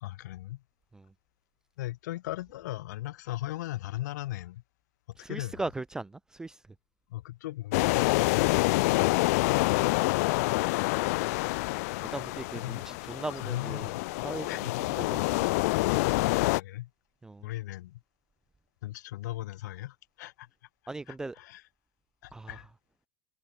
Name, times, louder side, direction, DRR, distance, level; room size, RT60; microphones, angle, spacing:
voice 1, 0.0-0.6 1.8-4.6 5.3-5.7 7.1-9.5 12.6-12.9 13.4-14.0 14.5-14.8 16.2-16.9 17.4-18.0 18.8-20.5 21.1-21.6 22.2-22.7, left 16 dB, 75° left, 2.5 m, -38 dB
voice 2, 5.2-6.6 9.8-9.9 12.0-13.9 14.2-14.5 14.9-15.5 17.2-17.4 20.9-21.4 22.3-22.6, right 2 dB, 5° right, 0.3 m, -38 dB
sound 1, 7.7-16.6, left 23 dB, 60° left, 1.0 m, -27 dB
supercardioid pair, 150°, 9 cm